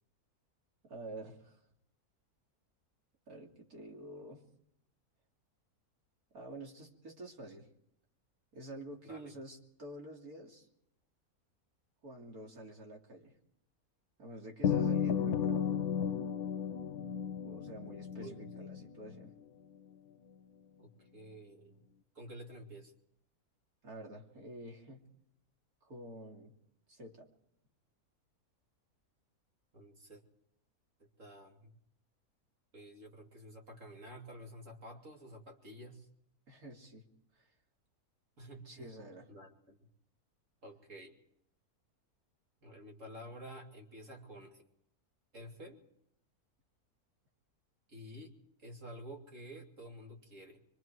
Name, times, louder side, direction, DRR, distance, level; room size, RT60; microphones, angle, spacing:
voice 1, 0.8-1.6 3.3-4.4 6.3-7.7 8.5-10.7 12.0-13.3 14.2-15.6 17.4-19.3 23.8-25.0 25.8-26.5 26.9-27.3 36.5-37.0 37.3-37.5 38.6-39.3, right 1 dB, 70° right, 0 dB, 3.2 m, -48 dB
voice 2, 9.0-9.4 18.2-18.5 20.8-21.9 22.1-22.9 29.7-30.2 31.0-31.8 32.7-36.1 38.4-39.0 39.3-39.8 40.6-41.1 42.6-44.6 45.3-45.8 47.9-48.3 48.6-50.6, equal, 55° right, 0 dB, 3.2 m, -50 dB
sound 1, 14.6-19.3, left 8 dB, 80° left, 1.5 m, -33 dB
24.5 x 23.5 x 4.7 m, 0.76 s
omnidirectional pair, 1.6 m